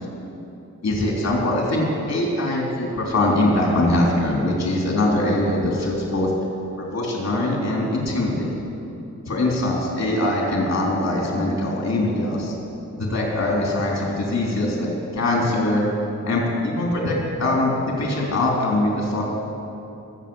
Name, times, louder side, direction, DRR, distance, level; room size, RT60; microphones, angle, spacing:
voice 1, 0.8-6.3 6.8-8.7 9.3-12.6 13.0-15.8 16.3-19.2, left 1 dB, 60° left, -2 dB, 3.6 m, -22 dB
23.0 x 8.4 x 7.1 m, 2.7 s
wide cardioid pair, 155°, 30 cm